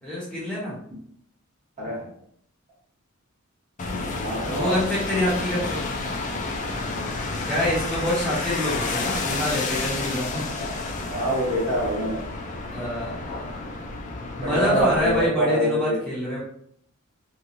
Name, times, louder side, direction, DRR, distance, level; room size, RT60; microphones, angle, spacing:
voice 1, 0.0-0.8 4.5-5.8 6.7-7.0 7.4-10.4 12.7-13.5 14.4-16.4, left 1 dB, 5° left, -9 dB, 1.1 m, -26 dB
voice 2, 1.8-2.1 4.2-4.8 5.2-5.4 10.6-10.7 11.1-12.3 14.4-16.0, equal, 35° right, -7 dB, 1.1 m, -25 dB
sound 1, 3.8-15.3, left 3 dB, 35° left, 0.4 m, -30 dB
3.0 x 2.3 x 2.5 m, 0.66 s
head